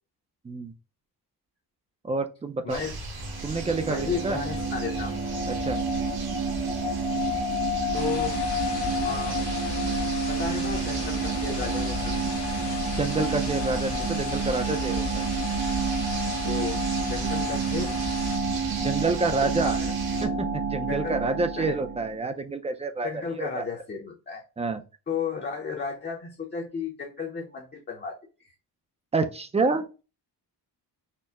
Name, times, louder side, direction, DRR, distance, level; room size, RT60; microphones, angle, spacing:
voice 1, 2.0-2.8 3.4-4.4 5.4-5.8 13.0-15.3 18.8-19.8 20.2-23.1 23.4-23.6 24.6-24.8 29.1-29.9, right 3 dB, 15° right, 7 dB, 0.4 m, -28 dB
sound 1, 2.7-20.3, right 3 dB, 65° right, 1.2 m, -37 dB
sound 2, 3.3-22.2, right 3 dB, 90° right, 1.3 m, -29 dB
voice 2, 3.9-5.2 7.0-7.3 7.9-8.4 9.0-9.5 10.0-12.3 16.4-16.8 17.1-18.0 19.6-19.9 20.9-21.2 21.6-21.8 23.0-24.4 25.1-28.5, left 5 dB, 25° left, 0 dB, 0.6 m, -34 dB
sound 3, 7.9-18.4, left 6 dB, 80° left, 0.9 m, -38 dB
4.4 x 2.0 x 3.5 m, 0.32 s
wide cardioid pair, 140°, 40 cm